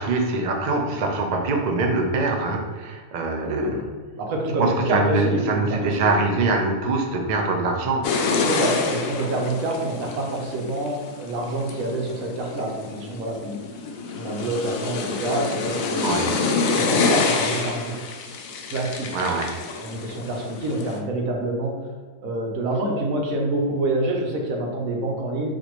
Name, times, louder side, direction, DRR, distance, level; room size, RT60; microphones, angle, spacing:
voice 1, 0.0-3.8 4.6-8.0 16.0-16.3 19.1-19.5, right 3 dB, 60° right, 2 dB, 0.4 m, -23 dB
voice 2, 3.4-3.9 4.2-6.1 8.4-13.6 14.2-16.1 16.7-18.0 18.7-19.1 19.8-21.9 22.2-25.6, right 2 dB, 90° right, 0 dB, 1.2 m, -27 dB
sound 1, 8.0-21.0, left 4 dB, 90° left, 1.0 m, -27 dB
4.2 x 2.6 x 3.0 m, 1.5 s
omnidirectional pair, 1.4 m